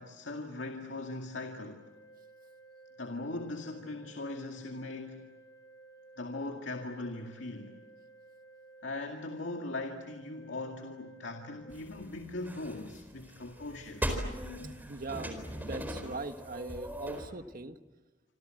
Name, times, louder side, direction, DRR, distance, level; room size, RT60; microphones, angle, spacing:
voice 1, 0.0-1.9 3.0-5.3 6.2-7.8 8.8-14.1 16.3-16.4, left 2 dB, 85° left, 2.2 m, -40 dB
Organ, 1.5-12.5, right 2 dB, 20° left, 6.0 m, -56 dB
sound 1, 11.7-17.3, equal, 10° right, 4.3 m, -39 dB
voice 2, 14.9-17.8, right 2 dB, 50° right, 1.5 m, -40 dB
27.5 x 26.5 x 7.8 m
head